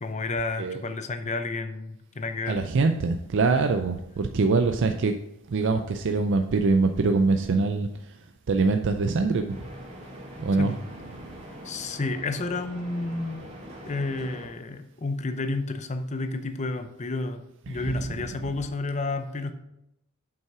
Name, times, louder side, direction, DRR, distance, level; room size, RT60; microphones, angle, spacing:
voice 1, 0.0-2.6 10.6-10.8 11.6-13.5 13.8-19.5, left 3 dB, 30° left, 8 dB, 0.6 m, -31 dB
voice 2, 2.5-5.2 5.5-7.9 8.5-9.6 10.4-10.7 17.7-18.0, right 3 dB, 55° right, 6 dB, 0.4 m, -23 dB
sound 1, 9.5-14.5, right 1 dB, 30° right, 1.9 m, -43 dB
7.8 x 5.5 x 4.8 m, 0.85 s
head